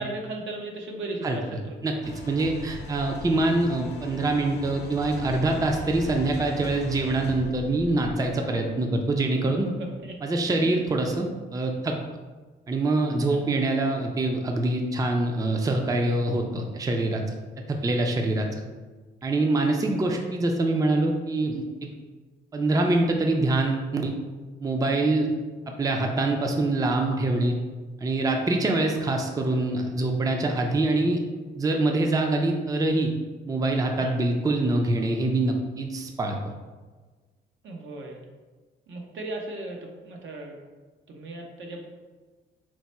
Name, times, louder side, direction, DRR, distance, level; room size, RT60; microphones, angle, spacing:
voice 1, 0.0-2.0 9.4-10.1 13.3-13.8 19.9-20.3 34.0-34.1 37.6-38.2 38.9-40.5 41.1-41.9, right 2 dB, 70° right, 1 dB, 0.8 m, -37 dB
sound 1, 2.0-10.6, left 3 dB, 60° left, 0.8 m, -40 dB
voice 2, 2.3-9.7 10.2-12.0 12.7-17.2 17.7-18.5 19.2-21.9 22.5-24.1 24.6-25.3 25.7-27.6 28.0-31.2 31.6-33.1 33.5-36.4, right 2 dB, 20° right, 3 dB, 0.5 m, -25 dB
4.6 x 2.1 x 4.1 m, 1.3 s
cardioid pair, 90°, 20 cm